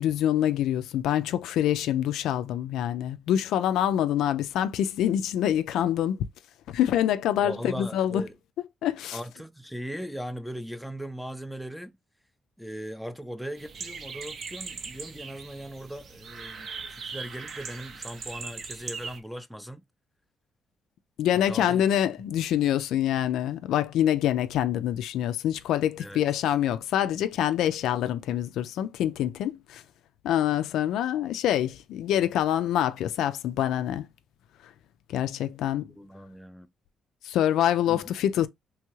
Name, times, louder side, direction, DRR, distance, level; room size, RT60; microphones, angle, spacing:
voice 1, 0.0-6.2 6.7-8.2 8.8-9.2 21.2-29.8 30.2-34.1 35.1-35.9 37.2-38.5, left 11 dB, 85° left, 0.3 m, -26 dB
voice 2, 7.4-8.3 9.1-12.0 12.6-19.8 21.3-21.8 26.0-26.2 35.8-36.7 37.9-38.0, equal, ahead, 0.4 m, -39 dB
sound 1, 13.6-19.2, right 5 dB, 55° right, 0.6 m, -40 dB
3.1 x 2.3 x 3.0 m
cardioid pair, 90°, 0 cm